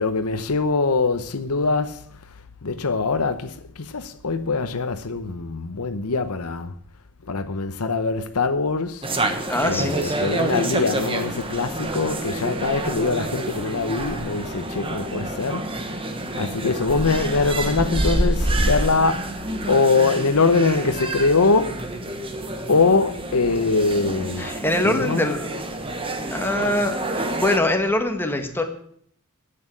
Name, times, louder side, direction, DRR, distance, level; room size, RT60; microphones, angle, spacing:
voice 1, 0.0-2.0 2.6-6.7 7.2-9.1 9.6-21.9 22.7-24.5 24.8-25.3, left 4 dB, 80° left, 0.9 m, -23 dB
sound 1, 9.0-27.6, right 1 dB, 25° right, 1.2 m, -28 dB
voice 2, 9.5-10.3 24.4-25.6 26.3-28.6, left 1 dB, 10° left, 1.6 m, -23 dB
11.0 x 8.7 x 8.5 m
head